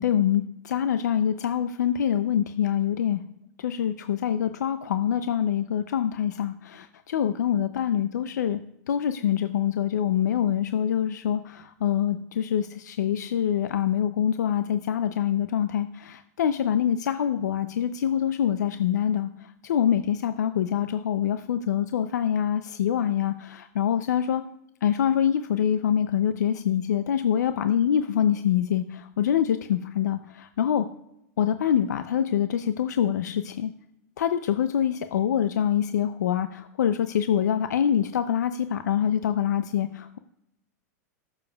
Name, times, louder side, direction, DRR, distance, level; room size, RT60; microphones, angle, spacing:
voice 1, 0.0-3.2 3.6-8.6 8.9-19.3 19.6-24.4 24.8-30.8 31.4-33.7 34.2-40.2, left 9 dB, 85° left, 10 dB, 0.5 m, -25 dB
19.5 x 6.9 x 2.3 m, 0.83 s
hypercardioid pair, 115°, 9 cm